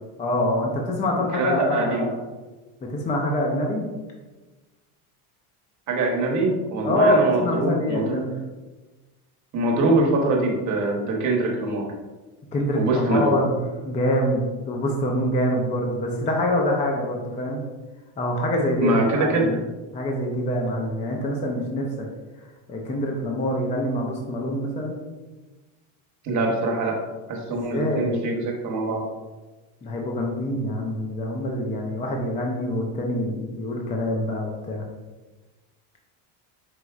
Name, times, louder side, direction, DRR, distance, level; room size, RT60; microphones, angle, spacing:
voice 1, 0.2-2.2 2.9-3.9 6.8-8.3 12.5-17.7 18.2-19.6 19.9-21.9 22.7-25.0 27.5-28.2 29.8-34.9, left 1 dB, 15° left, 0 dB, 0.4 m, -25 dB
voice 2, 1.3-2.1 5.9-8.2 9.5-11.9 12.7-13.3 18.8-19.6 26.2-27.0 27.3-29.1, right 2 dB, 40° right, 0 dB, 1.0 m, -23 dB
4.6 x 3.9 x 2.4 m, 1.2 s
cardioid pair, 130°, 46 cm